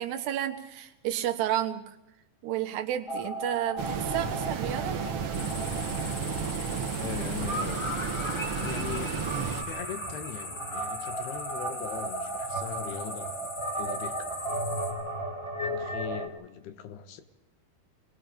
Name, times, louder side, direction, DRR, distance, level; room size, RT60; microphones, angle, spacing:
voice 1, 0.0-2.0 2.4-5.0, right 11 dB, 85° right, 6 dB, 3.4 m, -31 dB
sound 1, 3.1-16.3, right 1 dB, 10° left, 1.6 m, -36 dB
sound 2, 3.8-9.6, right 6 dB, 60° right, 1.4 m, -32 dB
sound 3, 5.3-14.9, left 2 dB, 30° left, 3.7 m, -41 dB
voice 2, 6.8-7.8 8.6-9.2 9.6-13.3 13.8-14.2 15.6-17.2, left 9 dB, 80° left, 9 dB, 3.3 m, -40 dB
27.0 x 19.5 x 5.2 m, 0.89 s
omnidirectional pair, 4.6 m